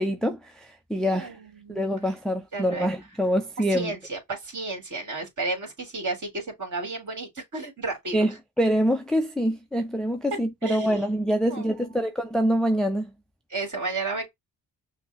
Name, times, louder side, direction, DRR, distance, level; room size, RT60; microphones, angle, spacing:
voice 1, 0.0-1.3 1.7-4.0 8.1-13.1, equal, ahead, 0.5 m, -25 dB
voice 2, 1.1-1.9 2.5-2.9 3.7-8.3 10.3-11.1 11.5-12.1 13.5-14.3, right 3 dB, 45° right, 2.4 m, -33 dB
5.7 x 2.2 x 3.4 m
cardioid pair, 70°, 41 cm